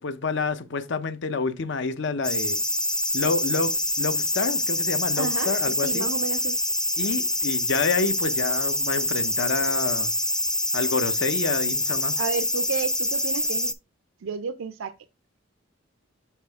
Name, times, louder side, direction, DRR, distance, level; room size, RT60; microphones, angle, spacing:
voice 1, 0.0-2.6 3.1-6.1 7.0-10.1 10.7-12.2, left 4 dB, 65° left, 0.7 m, -28 dB
sound 1, 2.2-13.7, left 1 dB, 5° left, 0.4 m, -26 dB
voice 2, 5.2-6.6 12.2-13.7 14.2-14.9, right 6 dB, 90° right, 0.4 m, -32 dB
7.2 x 4.2 x 3.5 m
head